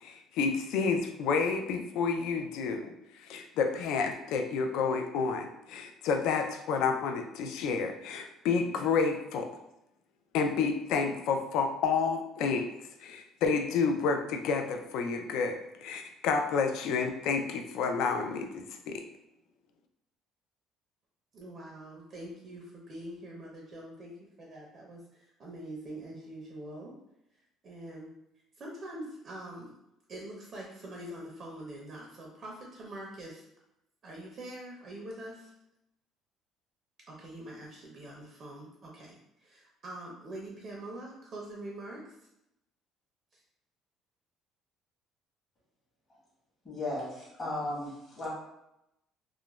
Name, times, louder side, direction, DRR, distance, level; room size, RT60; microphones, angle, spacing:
voice 1, 0.0-9.5 10.3-12.7 13.0-19.0, left 5 dB, 75° left, 5 dB, 0.3 m, -30 dB
voice 2, 21.3-26.9 27.6-28.1 28.6-29.7 30.1-33.4 34.0-35.5 37.1-42.0 43.3-43.4, right 1 dB, 40° right, -2 dB, 0.5 m, -44 dB
voice 3, 46.6-48.3, left 1 dB, 30° left, -7 dB, 0.9 m, -35 dB
2.3 x 2.0 x 3.0 m, 0.84 s
cardioid pair, 140°, 0 cm